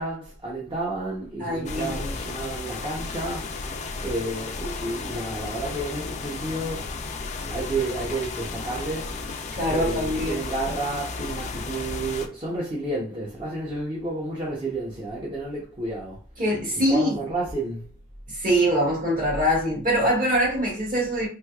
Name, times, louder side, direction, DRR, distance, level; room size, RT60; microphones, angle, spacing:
voice 1, 0.0-3.5 4.0-6.9 7.5-9.1 9.7-16.2 16.9-17.9, right 2 dB, 20° right, 0.7 m, -31 dB
voice 2, 1.4-2.1 9.5-10.4 16.4-17.2 18.4-21.3, equal, 40° right, 1.5 m, -23 dB
sound 1, 1.6-12.3, left 3 dB, 30° left, 0.4 m, -34 dB
3.2 x 3.1 x 2.3 m
head